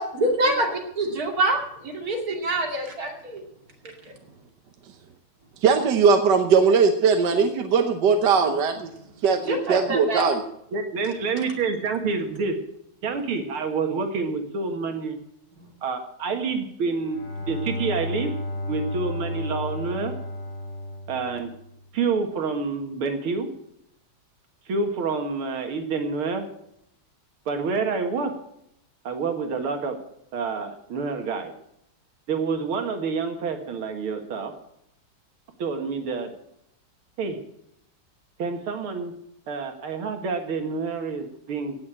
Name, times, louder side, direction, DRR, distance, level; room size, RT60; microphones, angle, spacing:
voice 1, 0.2-0.7 1.0-1.6 1.9-3.4 4.0-4.1 9.4-10.2, right 1 dB, 45° right, 1 dB, 3.0 m, -25 dB
voice 2, 5.6-8.9 9.2-10.4, right 5 dB, 60° right, 6 dB, 1.5 m, -20 dB
voice 3, 10.7-12.6 13.0-15.2 15.8-17.2 17.5-18.3 18.7-20.1 21.1-21.5 21.9-23.5 24.7-26.4 27.5-28.3 29.0-30.0 30.3-31.5 32.3-34.5 35.6-36.3 37.2-37.4 38.4-39.1 39.5-41.8, right 4 dB, 90° right, 5 dB, 2.5 m, -28 dB
Bowed string instrument, 16.9-21.9, left 1 dB, 55° left, 2.9 m, -33 dB
17.0 x 6.7 x 8.7 m, 0.76 s
omnidirectional pair, 2.3 m